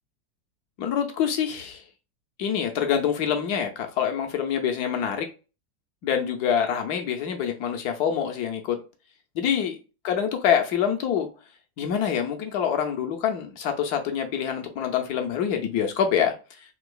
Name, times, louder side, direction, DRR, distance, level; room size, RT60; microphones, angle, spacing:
voice 1, 0.8-1.8 2.4-5.3 6.0-8.8 9.4-9.8 10.0-11.3 11.8-16.3, left 8 dB, 70° left, 1.0 m, -25 dB
3.8 x 2.7 x 2.3 m
omnidirectional pair, 2.0 m